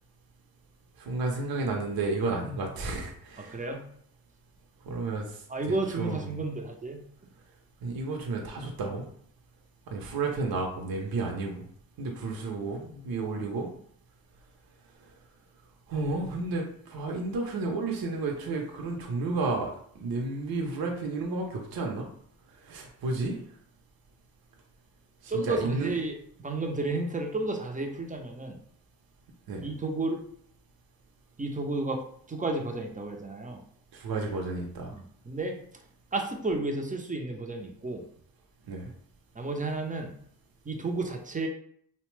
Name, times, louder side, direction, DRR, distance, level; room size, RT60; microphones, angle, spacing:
voice 1, 1.0-3.6 4.8-5.3 5.7-6.4 7.8-9.1 9.9-11.6 12.0-13.7 15.9-19.7 20.0-22.1 22.7-23.4 25.2-25.9 29.5-29.6 33.9-34.9 38.7-38.9, right 3 dB, 55° right, 1 dB, 0.7 m, -32 dB
voice 2, 3.5-3.9 5.5-7.0 25.3-26.2 26.4-28.6 29.6-30.2 31.4-32.0 32.3-33.6 34.9-35.5 36.1-38.0 39.4-40.2 40.7-41.5, right 2 dB, 20° right, 2 dB, 0.5 m, -32 dB
2.8 x 2.1 x 3.1 m, 0.63 s
cardioid pair, 65°, 44 cm